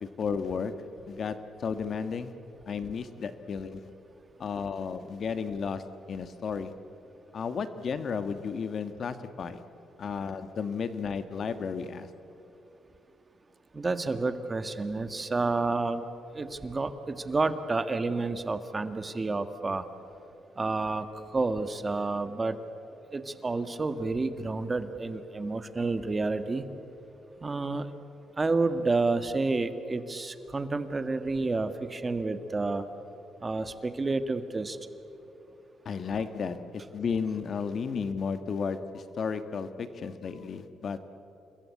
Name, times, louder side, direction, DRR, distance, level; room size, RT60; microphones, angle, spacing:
voice 1, 0.0-2.3 2.7-4.0 4.4-6.8 7.3-9.6 10.0-12.1 35.8-41.0, left 5 dB, 50° left, 11 dB, 1.4 m, -33 dB
voice 2, 13.7-16.0 16.3-19.8 20.6-22.6 23.1-26.6 27.4-27.9 28.4-32.8 33.4-34.8, right 3 dB, 25° right, 10 dB, 1.6 m, -30 dB
27.5 x 21.5 x 8.5 m, 2.9 s
cardioid pair, 90°, 0 cm